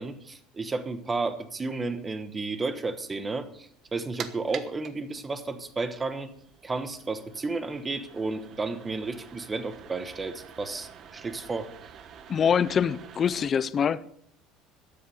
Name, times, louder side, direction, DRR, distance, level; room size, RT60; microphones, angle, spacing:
voice 1, 0.0-6.3 6.6-11.7, right 3 dB, 15° right, 1.2 m, -32 dB
sound 1, 3.8-13.5, right 8 dB, 40° right, 1.1 m, -47 dB
voice 2, 12.3-14.1, left 7 dB, 30° left, 0.5 m, -24 dB
13.5 x 10.5 x 6.5 m
cardioid pair, 150°, 0 cm